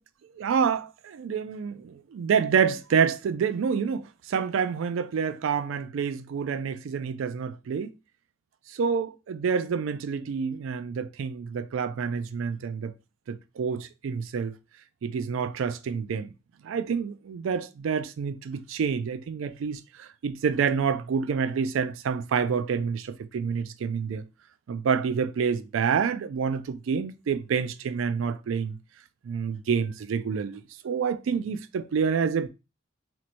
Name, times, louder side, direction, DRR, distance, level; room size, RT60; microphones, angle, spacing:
voice 1, 0.4-7.9 8.7-12.9 13.3-14.5 15.0-16.3 16.6-24.2 24.7-28.8 29.2-32.5, right 6 dB, 75° right, 0.3 m, -28 dB
4.4 x 2.9 x 2.5 m
head